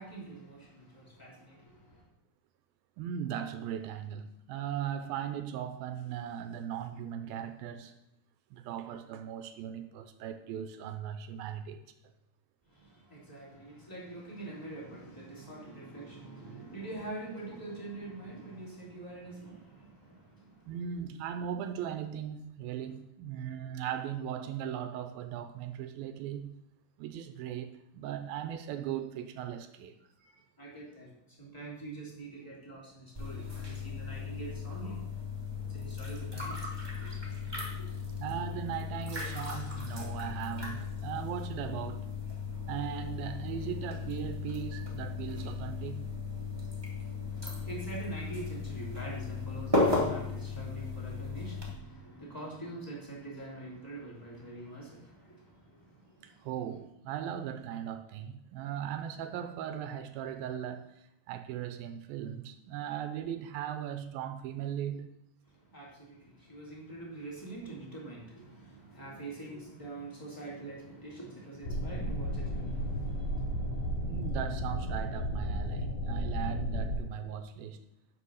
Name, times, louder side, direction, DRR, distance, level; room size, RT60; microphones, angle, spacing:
voice 1, 0.0-2.1 12.6-20.8 23.4-23.5 30.2-35.0 35.7-37.2 37.8-37.9 38.3-38.4 47.2-56.5 65.5-74.1, right 2 dB, 5° left, 2.2 m, -45 dB
voice 2, 3.0-8.0 8.5-11.9 20.7-26.6 27.0-29.9 38.2-42.1 42.7-46.1 56.2-65.1 74.0-77.8, right 9 dB, 80° right, 2.3 m, -38 dB
sound 1, 33.1-51.7, left 4 dB, 35° right, 0.4 m, -36 dB
sound 2, 71.6-77.0, equal, 70° left, 6.7 m, -33 dB
11.0 x 5.6 x 6.4 m
omnidirectional pair, 4.6 m